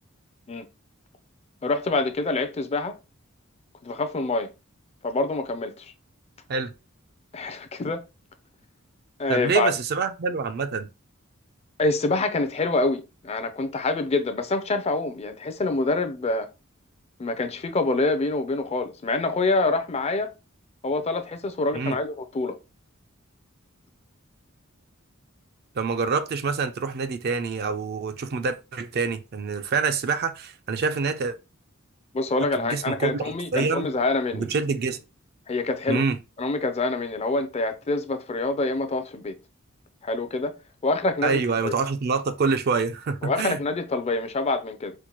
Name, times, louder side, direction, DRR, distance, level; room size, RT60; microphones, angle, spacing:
voice 1, 1.6-3.0 3.8-4.5 5.0-5.9 7.3-8.0 9.2-9.7 11.8-16.5 17.2-20.3 20.8-22.6 32.1-34.5 35.5-36.0 36.4-39.3 40.0-40.5 40.8-41.7 43.2-44.9, left 2 dB, 30° left, 0.4 m, -26 dB
voice 2, 9.3-10.9 21.7-22.0 25.8-31.4 32.6-33.2 33.5-33.9 34.3-35.0 35.9-36.2 41.2-43.6, right 5 dB, 50° right, 0.4 m, -26 dB
4.4 x 2.1 x 2.9 m
head